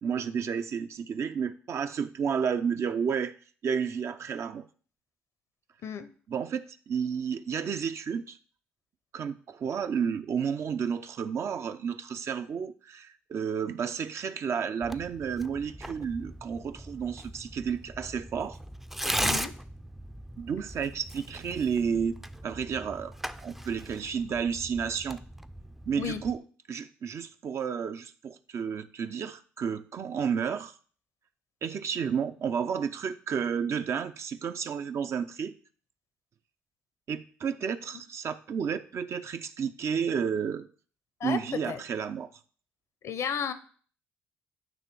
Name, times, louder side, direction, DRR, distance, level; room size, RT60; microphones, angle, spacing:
voice 1, 0.0-3.3 3.6-4.7 6.3-8.4 9.1-18.6 20.4-22.2 22.4-23.1 23.4-25.2 25.9-26.4 26.7-30.8 31.6-35.6 37.1-40.7 41.2-42.3, right 7 dB, 55° right, 0.6 m, -31 dB
Tearing, 14.8-26.4, equal, 5° right, 0.5 m, -38 dB
voice 2, 19.2-19.5 26.0-26.2 41.2-41.8 43.0-43.5, left 7 dB, 60° left, 0.8 m, -33 dB
9.1 x 3.1 x 6.1 m
supercardioid pair, 55°, 6 cm